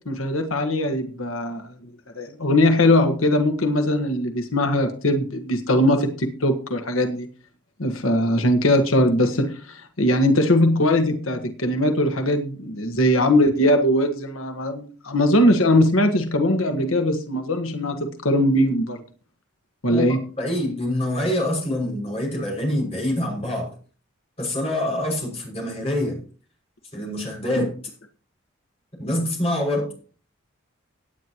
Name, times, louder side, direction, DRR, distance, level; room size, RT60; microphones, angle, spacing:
voice 1, 0.1-1.6 2.1-7.3 7.8-19.0 19.8-20.2 27.6-27.7, left 1 dB, 90° left, 5 dB, 1.4 m, -20 dB
voice 2, 19.9-23.7 24.4-26.2 26.9-27.7 29.0-29.9, left 1 dB, 30° left, -1 dB, 6.0 m, -25 dB
17.5 x 9.4 x 3.0 m, 0.40 s
head